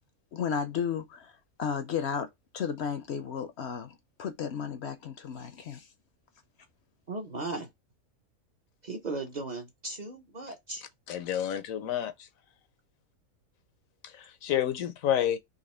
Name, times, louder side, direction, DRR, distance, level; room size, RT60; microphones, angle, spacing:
voice 1, 0.3-1.3 1.6-2.3 2.5-5.9, left 7 dB, 65° left, 0.7 m, -33 dB
voice 2, 7.1-7.7 8.8-10.8, right 3 dB, 40° right, 0.7 m, -37 dB
voice 3, 11.1-12.3 14.0-15.4, left 10 dB, 80° left, 1.1 m, -29 dB
4.1 x 2.9 x 4.2 m
omnidirectional pair, 1.4 m